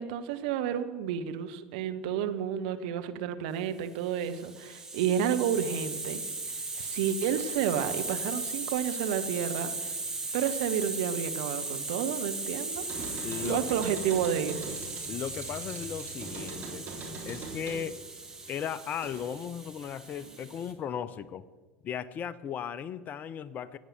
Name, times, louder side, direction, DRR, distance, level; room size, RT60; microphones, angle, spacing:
voice 1, 0.0-6.2 6.5-9.9 10.3-12.8 13.4-14.8, right 9 dB, 60° right, 8 dB, 1.1 m, -31 dB
Hiss, 4.1-20.7, right 3 dB, 10° right, 2.3 m, -37 dB
sound 1, 12.7-19.5 19.8-20.7, right 3 dB, 35° right, 3.6 m, -43 dB
voice 2, 13.2-13.6 15.1-16.9 17.2-18.0 18.5-21.4 21.8-23.8, left 8 dB, 35° left, 17 dB, 0.6 m, -36 dB
15.0 x 9.5 x 6.8 m, 1.3 s
figure-of-eight pair, 75°, 5 cm